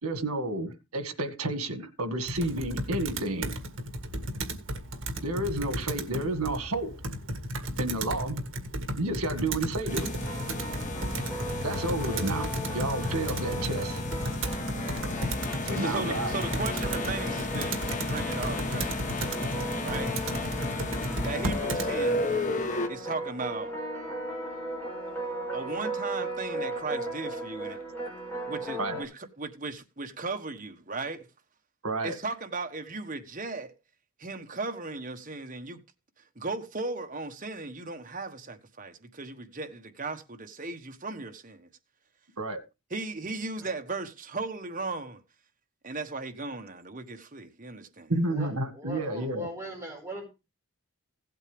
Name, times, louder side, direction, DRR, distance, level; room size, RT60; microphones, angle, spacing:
voice 1, 0.0-3.5 5.2-7.0 7.8-8.4 8.9-10.1 11.6-12.5 12.7-14.0 15.6-16.3 28.8-29.0 31.8-32.2 42.4-42.6 48.1-49.5, right 2 dB, 80° right, 2.0 m, -31 dB
Computer keyboard, 2.3-21.9, right 1 dB, 60° right, 1.9 m, -34 dB
sound 1, 9.9-22.9, left 2 dB, 35° left, 1.1 m, -33 dB
sound 2, 10.2-29.0, right 1 dB, 10° left, 4.4 m, -38 dB
voice 2, 15.7-19.0 19.7-20.1 21.2-22.2 22.9-23.8 25.5-27.8 28.5-29.1 29.4-31.3 32.0-33.7 34.2-35.8 36.3-41.7 42.9-45.2 45.8-48.1, right 3 dB, 35° right, 1.3 m, -36 dB
voice 3, 48.3-50.2, right 1 dB, 10° right, 4.9 m, -40 dB
16.5 x 8.2 x 3.4 m
head